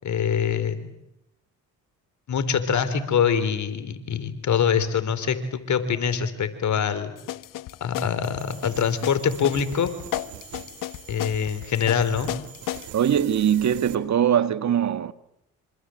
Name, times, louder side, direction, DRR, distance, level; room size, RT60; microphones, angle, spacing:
voice 1, 0.0-0.9 2.3-7.1 7.8-9.9 11.1-12.3, left 7 dB, 60° left, 4.1 m, -24 dB
sound 1, 7.2-12.9, left 14 dB, 80° left, 1.1 m, -34 dB
sound 2, 8.4-14.0, right 12 dB, 85° right, 2.7 m, -44 dB
voice 2, 12.9-15.1, right 9 dB, 60° right, 1.6 m, -21 dB
26.5 x 26.5 x 7.9 m
supercardioid pair, 65°, 32 cm